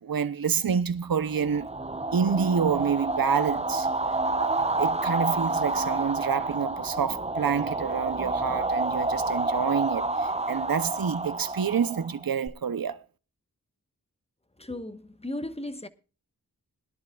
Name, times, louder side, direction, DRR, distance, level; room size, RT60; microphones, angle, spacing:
voice 1, 0.0-1.7 2.1-3.9 4.4-13.0, right 7 dB, 70° right, 0.8 m, -28 dB
sound 1, 1.4-12.5, right 2 dB, 15° right, 0.8 m, -29 dB
voice 2, 14.6-15.9, left 1 dB, 15° left, 1.2 m, -36 dB
21.0 x 11.5 x 2.4 m
wide cardioid pair, 55°, 36 cm